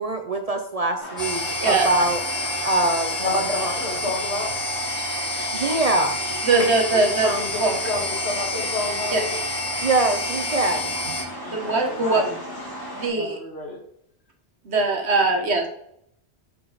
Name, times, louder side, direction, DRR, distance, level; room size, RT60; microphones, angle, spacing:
voice 1, 0.0-2.2 2.6-3.7 5.5-6.2 6.6-6.7 9.8-10.9, right 2 dB, 40° right, 5 dB, 0.6 m, -23 dB
sound 1, 1.0-13.1, equal, 20° left, 2.7 m, -36 dB
sound 2, 1.2-11.2, left 1 dB, 45° left, 2.5 m, -28 dB
voice 2, 3.2-4.5 6.9-9.4 11.4-12.4 13.1-13.8, left 3 dB, 70° left, 0 dB, 1.9 m, -30 dB
voice 3, 6.4-7.3 7.6-7.8 9.1-9.2 11.5-12.2 13.0-13.4 14.6-15.7, right 3 dB, 75° right, 2 dB, 1.5 m, -21 dB
7.7 x 4.8 x 4.0 m, 0.71 s
omnidirectional pair, 1.1 m